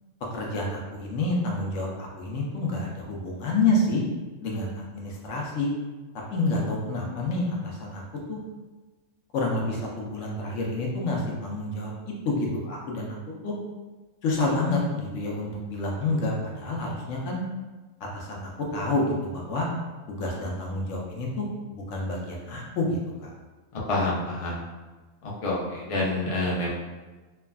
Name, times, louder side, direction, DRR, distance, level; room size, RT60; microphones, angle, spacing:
voice 1, 0.3-4.0 4.4-5.7 6.3-8.0 8.3-8.4 9.3-11.9 12.2-13.2 13.4-13.5 14.2-17.4 18.1-19.7 20.1-21.5 21.7-23.3, left 2 dB, 70° left, -2 dB, 0.9 m, -28 dB
voice 2, 23.7-24.6 25.2-26.7, left 2 dB, 55° left, -5 dB, 0.3 m, -27 dB
3.2 x 2.3 x 2.2 m, 1.2 s
omnidirectional pair, 1.4 m